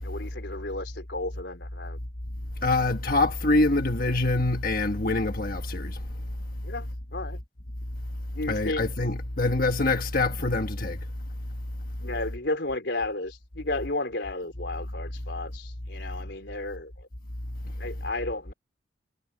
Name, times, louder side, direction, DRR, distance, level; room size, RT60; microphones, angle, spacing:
voice 1, 0.0-2.0 6.6-7.4 8.3-8.9 12.0-17.1 17.8-18.5, left 2 dB, 70° left, 4.5 m, -33 dB
voice 2, 2.6-6.0 8.5-11.0, left 2 dB, 50° left, 1.4 m, -25 dB
head